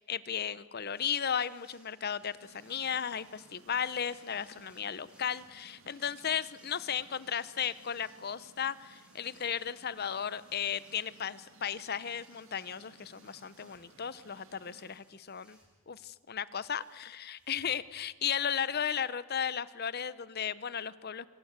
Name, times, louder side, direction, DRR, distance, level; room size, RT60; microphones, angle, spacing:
voice 1, 0.0-15.6 15.9-21.3, left 8 dB, 50° left, 17 dB, 0.8 m, -35 dB
sound 1, 0.9-18.3, equal, 5° right, 7.2 m, -67 dB
sound 2, 2.4-15.0, right 3 dB, 70° right, 2.3 m, -60 dB
25.5 x 25.0 x 8.2 m, 1.2 s
head